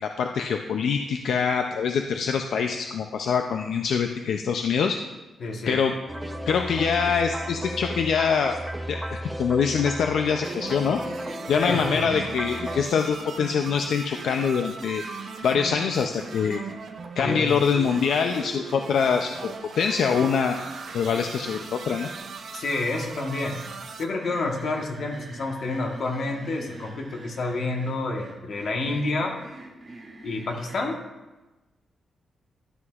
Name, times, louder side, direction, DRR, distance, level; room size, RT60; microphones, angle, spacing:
voice 1, 0.0-5.0 5.7-5.9 6.5-8.6 8.9-11.0 11.5-15.0 15.4-16.6 17.2-20.6 20.9-22.1, left 6 dB, 70° left, 5 dB, 0.4 m, -24 dB
voice 2, 5.4-5.8 11.6-12.1 17.2-17.6 22.5-23.6 24.0-29.4 30.2-31.0, left 2 dB, 55° left, 2 dB, 1.2 m, -29 dB
sound 1, 6.1-12.9, right 1 dB, 5° right, 0.6 m, -34 dB
sound 2, 10.4-24.0, right 5 dB, 55° right, 0.7 m, -38 dB
sound 3, 24.2-30.8, right 2 dB, 35° right, 2.7 m, -45 dB
12.5 x 8.0 x 2.4 m, 1.1 s
wide cardioid pair, 160°, 0 cm